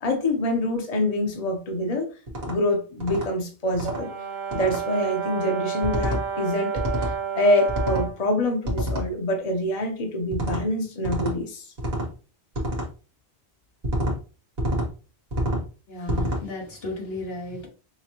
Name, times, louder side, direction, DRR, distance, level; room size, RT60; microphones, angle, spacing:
voice 1, 0.0-2.1 2.4-4.1 4.5-11.7, left 1 dB, 40° left, 0.9 m, -26 dB
sound 1, 2.3-2.6 3.0-3.3 3.7-4.0 4.5-4.8 5.8-6.2 6.8-7.1 7.7-8.1 8.7-9.1 10.3-10.6 11.0-11.4 11.8-12.1 12.5-12.9 13.8-14.2 14.6-14.9 15.3-15.6 16.1-16.4, equal, 70° right, 1.7 m, -27 dB
Brass instrument, 3.8-8.2, right 7 dB, 50° right, 0.8 m, -30 dB
voice 2, 15.9-17.7, left 2 dB, 75° left, 1.4 m, -34 dB
5.8 x 2.2 x 3.0 m
omnidirectional pair, 1.0 m